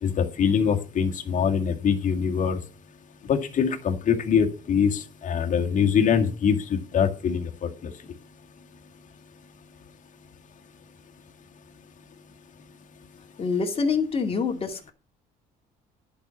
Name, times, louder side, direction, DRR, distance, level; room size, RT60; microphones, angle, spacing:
voice 1, 0.0-2.6 3.3-7.9, left 7 dB, 50° left, 3 dB, 2.1 m, -24 dB
voice 2, 13.4-14.9, left 5 dB, 35° left, 4 dB, 2.4 m, -26 dB
10.5 x 5.6 x 7.2 m, 0.33 s
cardioid pair, 110°, 17 cm